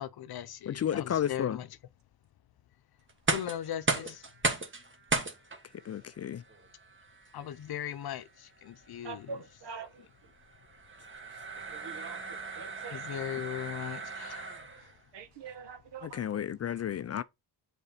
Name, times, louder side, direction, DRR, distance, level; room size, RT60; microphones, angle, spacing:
voice 1, 0.0-1.7 3.3-4.2 7.3-9.4 12.9-14.4, left 11 dB, 60° left, 0.8 m, -38 dB
voice 2, 0.7-1.6 5.9-6.4 16.0-17.2, left 9 dB, 35° left, 0.4 m, -32 dB
sound 1, 3.1-15.0, right 3 dB, 25° right, 1.5 m, -37 dB
voice 3, 9.0-9.9 11.7-12.2 12.6-13.0 15.1-16.2, right 5 dB, 70° right, 1.3 m, -43 dB
6.8 x 4.3 x 4.1 m
cardioid pair, 75°, 43 cm